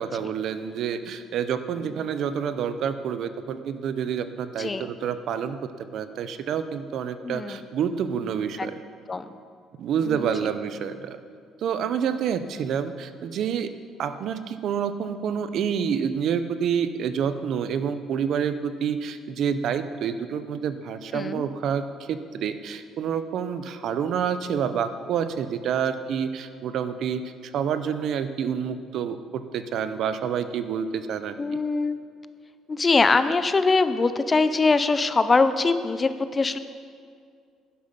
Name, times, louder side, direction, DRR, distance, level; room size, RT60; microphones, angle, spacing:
voice 1, 0.0-8.7 9.8-11.2 11.6-13.7 14.0-27.2 27.5-31.3, right 7 dB, 55° right, 11 dB, 0.6 m, -28 dB
voice 2, 4.6-4.9 7.2-7.6 8.6-8.7 9.1-9.3 10.1-10.3 21.1-21.5 31.4-32.0 32.7-36.6, left 3 dB, 20° left, 11 dB, 0.5 m, -22 dB
11.0 x 11.0 x 5.3 m, 2.2 s
cardioid pair, 160°, 0 cm